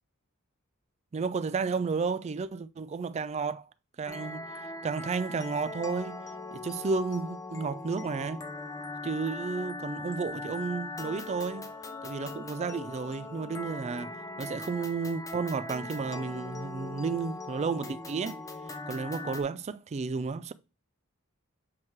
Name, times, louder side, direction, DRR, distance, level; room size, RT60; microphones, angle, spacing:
voice 1, 1.1-3.7 4.0-4.5 4.8-6.2 6.5-8.5 9.0-11.7 12.0-18.4 18.9-20.5, right 4 dB, 30° right, 0.3 m, -32 dB
sound 1, 4.1-19.4, left 2 dB, 15° left, 0.6 m, -40 dB
7.5 x 3.1 x 4.5 m
head